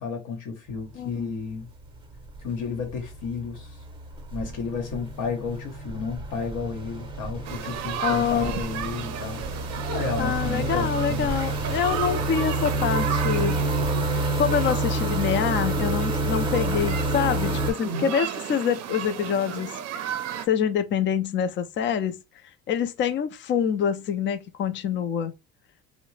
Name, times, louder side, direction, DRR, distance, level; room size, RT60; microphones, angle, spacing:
voice 1, 0.0-1.7 2.4-3.8 4.3-9.4 9.9-11.3 17.8-18.2, left 5 dB, 80° left, 1.0 m, -32 dB
sound 1, 0.7-1.2 1.5-17.7, right 2 dB, 15° right, 0.7 m, -29 dB
voice 2, 1.0-1.3 8.0-8.5 10.2-13.6 14.4-19.8 20.5-22.2 22.7-25.3, left 8 dB, 40° left, 0.4 m, -26 dB
sound 2, 7.4-20.5, right 10 dB, 55° right, 0.5 m, -34 dB
2.7 x 2.0 x 3.1 m
cardioid pair, 100°, 31 cm